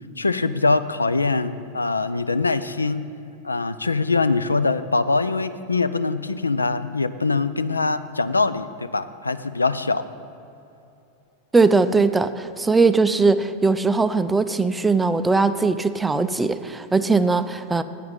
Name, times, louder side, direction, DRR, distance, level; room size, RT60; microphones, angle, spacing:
voice 1, 0.2-3.0 3.4-10.0, left 3 dB, 80° left, 13 dB, 0.3 m, -23 dB
voice 2, 11.5-17.8, right 4 dB, 10° right, 11 dB, 0.4 m, -20 dB
8.3 x 5.7 x 8.0 m, 2.8 s
figure-of-eight pair, 90°, 0 cm